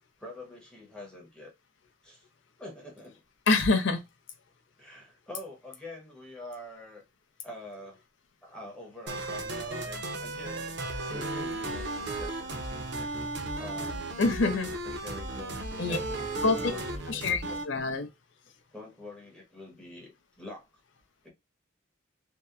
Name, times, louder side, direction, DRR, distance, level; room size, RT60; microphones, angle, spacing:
voice 1, 0.2-1.5 2.0-2.3 2.6-3.2 4.8-7.0 7.4-8.0 8.4-10.7 11.0-12.6 13.6-14.6 14.8-17.3 18.7-20.7 21.2-21.3, left 2 dB, 5° left, 0.7 m, -45 dB
voice 2, 3.5-4.0 14.2-14.7 15.8-16.0 16.4-16.6 17.1-18.1, left 3 dB, 60° left, 0.5 m, -26 dB
sound 1, 9.1-17.6, right 2 dB, 55° right, 0.6 m, -35 dB
2.7 x 2.1 x 2.3 m
head